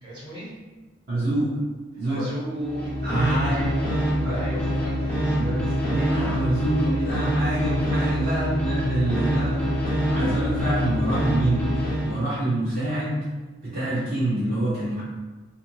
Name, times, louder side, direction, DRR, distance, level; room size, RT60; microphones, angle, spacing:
voice 1, 0.0-0.5 2.0-3.7 4.3-5.4 8.0-8.3, equal, 25° right, -9 dB, 1.1 m, -37 dB
voice 2, 1.1-1.6 2.0-2.3 3.0-4.5 5.2-9.7 10.1-13.3 13.6-15.0, right 1 dB, 45° right, -11 dB, 0.8 m, -26 dB
sound 1, 2.6-12.2, equal, 5° left, 0.3 m, -25 dB
2.6 x 2.5 x 2.8 m, 1.2 s
head